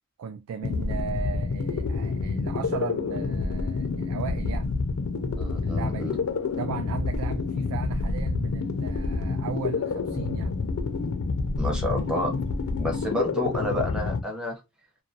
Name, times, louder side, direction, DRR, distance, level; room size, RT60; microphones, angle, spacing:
voice 1, 0.2-4.7 5.6-6.2 6.6-10.5, right 6 dB, 90° right, 0.3 m, -36 dB
sound 1, 0.6-14.2, left 4 dB, 75° left, 0.4 m, -28 dB
voice 2, 5.4-6.2 11.6-12.3 12.8-14.6, left 1 dB, 5° right, 0.7 m, -29 dB
2.3 x 2.2 x 2.7 m
head